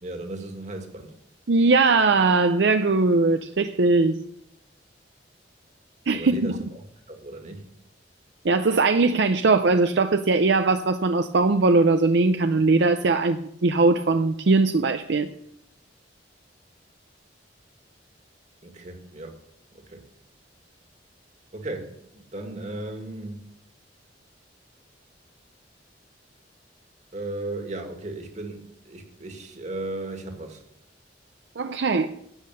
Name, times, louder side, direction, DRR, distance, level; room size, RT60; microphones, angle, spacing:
voice 1, 0.0-1.1 6.1-7.6 18.6-19.4 19.7-20.1 21.5-23.4 27.1-30.6, right 2 dB, 40° right, 2.0 m, -36 dB
voice 2, 1.5-4.2 6.1-6.6 8.4-15.3 31.6-32.1, right 3 dB, 70° right, 0.5 m, -20 dB
12.0 x 8.5 x 6.8 m
head